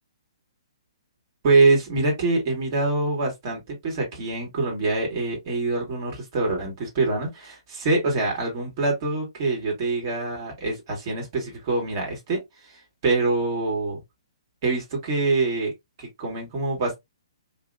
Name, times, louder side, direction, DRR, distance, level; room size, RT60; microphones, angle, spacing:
voice 1, 1.4-12.4 13.0-14.0 14.6-15.7 16.0-17.0, right 3 dB, 35° right, 1.5 m, -24 dB
2.9 x 2.6 x 2.5 m
figure-of-eight pair, 125°, 3 cm